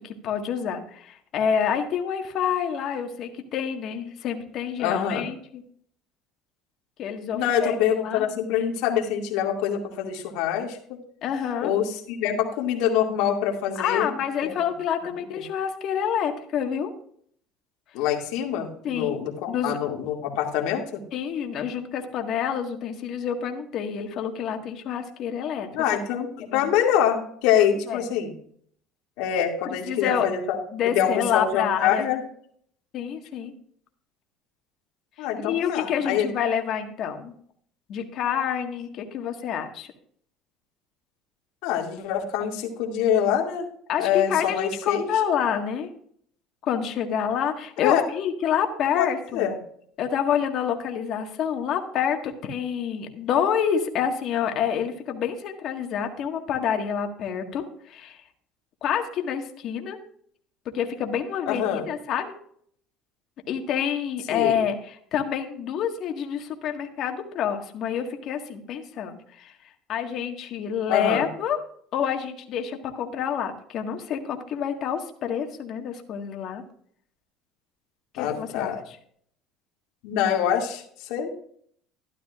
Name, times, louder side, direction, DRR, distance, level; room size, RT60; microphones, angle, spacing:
voice 1, 0.0-5.6 7.0-8.3 11.2-11.7 13.7-16.9 18.8-19.2 19.5-19.8 21.1-26.0 26.5-26.7 27.9-28.1 29.6-30.2 30.7-32.1 32.9-33.5 35.2-37.3 37.9-39.9 43.9-45.9 46.6-49.5 50.0-58.2 58.8-60.0 60.7-62.3 63.5-69.5 69.9-71.6 71.9-76.6 78.1-79.0, left 8 dB, 55° left, 4 dB, 1.7 m, -28 dB
voice 2, 4.8-5.3 7.3-11.0 11.6-14.1 14.4-14.5 15.3-15.4 17.9-21.0 25.7-28.3 29.2-30.4 30.9-32.2 35.2-36.3 41.6-43.7 44.0-45.1 47.8-48.0 48.9-49.6 61.5-61.9 64.3-64.6 70.9-71.3 78.2-78.8 80.0-81.3, left 9 dB, 75° left, 1 dB, 2.3 m, -25 dB
12.5 x 12.0 x 2.5 m, 0.62 s
supercardioid pair, 100°, 0 cm